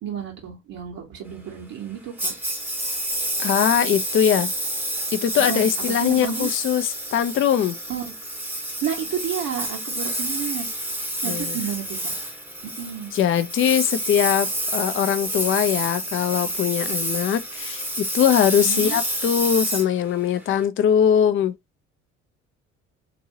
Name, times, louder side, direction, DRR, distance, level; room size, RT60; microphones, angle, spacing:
voice 1, 0.0-2.3 5.5-6.5 7.9-8.1 8.8-10.7 11.2-12.1 12.8-13.1 18.6-19.0, right 9 dB, 60° right, 1.3 m, -31 dB
Engine, 2.2-20.6, right 1 dB, 5° right, 0.9 m, -28 dB
voice 2, 3.4-4.5 5.1-7.8 11.2-11.6 13.1-21.5, left 9 dB, 35° left, 0.5 m, -21 dB
2.9 x 2.7 x 2.6 m
hypercardioid pair, 55°, 39 cm